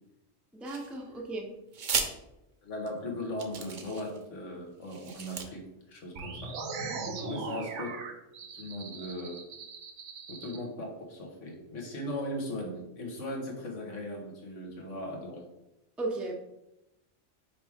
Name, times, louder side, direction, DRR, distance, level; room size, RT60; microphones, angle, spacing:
voice 1, 0.5-1.5 7.1-7.4 16.0-16.3, right 2 dB, ahead, 0 dB, 0.6 m, -36 dB
sound 1, 0.6-1.2 1.7-2.1 2.9-3.0 3.4-4.2 4.8-5.5, right 5 dB, 50° right, 0.7 m, -34 dB
voice 2, 2.6-6.6 7.2-8.0 8.5-9.4 10.3-15.4, left 1 dB, 85° left, 0 dB, 1.6 m, -38 dB
sound 2, 6.2-10.6, right 4 dB, 75° right, 1.1 m, -39 dB
5.9 x 4.5 x 3.5 m, 0.92 s
omnidirectional pair, 1.2 m